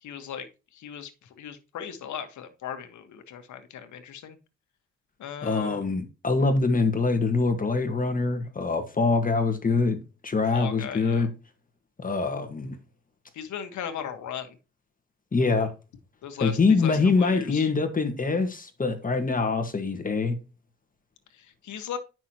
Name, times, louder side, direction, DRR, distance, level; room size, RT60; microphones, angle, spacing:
voice 1, 0.0-0.5 0.7-4.4 5.2-5.8 10.5-11.3 13.3-14.6 16.2-17.7 21.3-22.0, left 8 dB, 70° left, 1.5 m, -37 dB
voice 2, 5.4-11.3 12.0-12.8 15.3-15.7 16.4-20.4, left 4 dB, 25° left, 1.6 m, -24 dB
9.9 x 6.1 x 3.0 m
cardioid pair, 90°, 30 cm